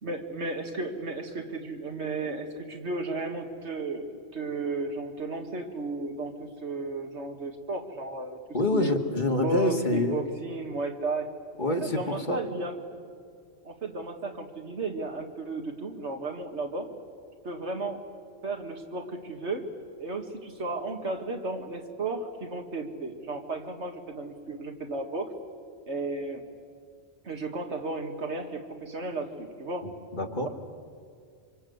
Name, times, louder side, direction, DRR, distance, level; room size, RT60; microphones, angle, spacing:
voice 1, 0.0-8.4 8.7-9.0 9.4-11.3 11.8-13.0 13.6-16.9 17.4-18.0 18.4-19.7 20.0-25.3 25.9-26.4 27.2-29.9, right 2 dB, 85° right, 4 dB, 2.3 m, -34 dB
voice 2, 8.5-10.3 11.6-12.4 29.8-30.5, left 1 dB, 45° left, 4 dB, 2.0 m, -27 dB
26.5 x 25.5 x 8.0 m, 2.2 s
omnidirectional pair, 1.1 m